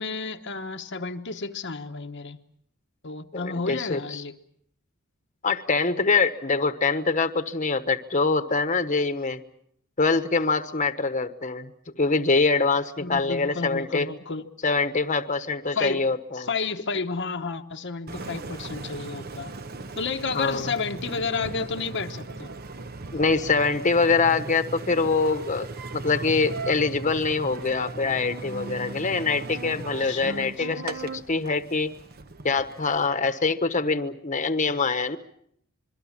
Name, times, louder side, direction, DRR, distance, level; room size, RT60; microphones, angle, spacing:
voice 1, 0.0-2.4 3.0-4.3 13.0-14.4 15.7-16.0 16.3-19.5 20.0-22.5 29.8-30.8, left 4 dB, 55° left, 4 dB, 1.1 m, -31 dB
voice 2, 3.3-4.2 5.4-9.4 10.0-11.7 12.0-14.1 14.6-16.5 20.3-20.7 23.1-25.7 25.9-31.9 32.4-35.2, left 4 dB, 35° left, 10 dB, 1.2 m, -24 dB
Engine, 18.1-33.1, right 3 dB, 45° right, 1.0 m, -38 dB
26.5 x 23.0 x 7.2 m, 0.71 s
head